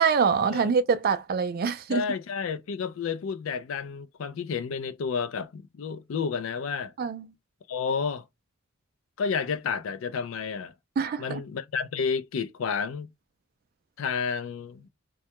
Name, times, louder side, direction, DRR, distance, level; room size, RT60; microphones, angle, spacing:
voice 1, 0.0-2.0 7.0-7.2 11.0-11.4, right 6 dB, 45° right, 0.3 m, -24 dB
voice 2, 1.9-6.9 7.7-8.3 9.2-10.7 11.2-13.1 14.0-14.9, left 6 dB, 75° left, 0.4 m, -31 dB
2.2 x 2.1 x 2.8 m
head